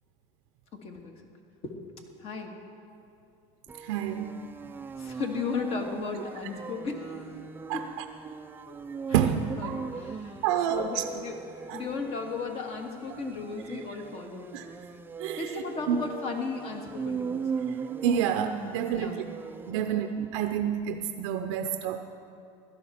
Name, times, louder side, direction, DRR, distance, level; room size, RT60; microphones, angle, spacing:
voice 1, 0.7-1.1 1.6-1.7 2.2-2.6 5.0-7.3 7.7-7.9 8.7-8.8 9.6-10.4 10.7-11.4 11.7-14.5 15.4-17.4 18.9-19.2 19.8-20.0, left 4 dB, 45° left, 3 dB, 1.8 m, -35 dB
sound 1, 3.7-20.3, right 5 dB, 15° right, 0.4 m, -39 dB
voice 2, 3.8-4.5 7.7-8.0 9.1-9.8 10.4-11.0 11.7-11.8 13.1-13.3 14.5-14.6 15.2-16.0 17.7-19.2 19.7-22.0, right 9 dB, 80° right, 6 dB, 0.6 m, -29 dB
16.5 x 12.0 x 4.3 m, 2.7 s
supercardioid pair, 125°, 15 cm